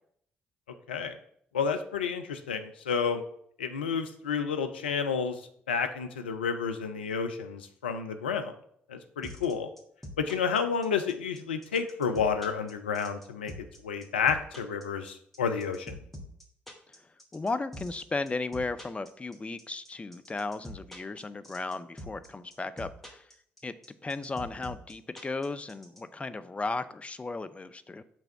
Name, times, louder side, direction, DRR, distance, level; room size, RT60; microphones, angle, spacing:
voice 1, 1.5-3.2 3.6-5.4 5.7-8.6 8.9-9.7 10.2-13.5 13.8-16.0, left 6 dB, 80° left, 7 dB, 0.5 m, -30 dB
sound 1, 9.2-26.0, left 1 dB, 5° left, 1.5 m, -44 dB
voice 2, 17.3-23.2 23.6-23.7 24.0-28.0, left 3 dB, 20° left, 11 dB, 0.5 m, -35 dB
6.0 x 3.4 x 5.5 m, 0.66 s
figure-of-eight pair, 45°, 6 cm